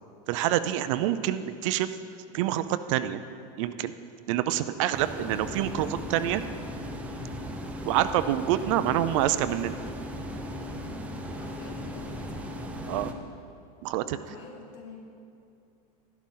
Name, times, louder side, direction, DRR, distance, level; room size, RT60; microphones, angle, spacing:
voice 1, 0.3-1.9 2.3-3.2 3.6-3.9 4.3-6.4 7.9-9.8 12.9-13.1 13.8-14.2, right 12 dB, 55° right, 12 dB, 0.5 m, -27 dB
sound 1, 4.9-13.1, equal, 5° right, 0.6 m, -37 dB
voice 2, 7.8-8.1 11.3-12.4 14.1-15.1, left 4 dB, 60° left, 0 dB, 2.2 m, -47 dB
12.5 x 11.5 x 3.8 m, 2.5 s
supercardioid pair, 160°, 19 cm